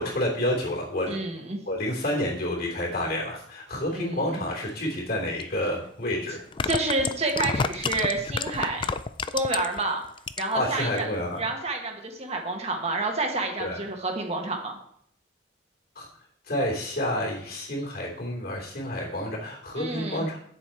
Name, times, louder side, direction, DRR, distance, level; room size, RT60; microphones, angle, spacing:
voice 1, 0.0-1.2 1.6-6.4 10.5-11.4 13.6-13.8 15.9-16.1 16.5-20.4, left 1 dB, 50° left, -1 dB, 3.0 m, -29 dB
voice 2, 1.1-1.6 3.9-4.4 6.6-8.8 9.3-10.0 10.4-11.1 11.4-14.8 19.8-20.3, right 2 dB, 35° right, 2 dB, 1.3 m, -29 dB
sound 1, 5.4-5.5 6.4-9.8 10.2-10.7 11.0-11.1, left 5 dB, 25° left, 0.3 m, -29 dB
9.1 x 7.0 x 4.4 m, 0.68 s
head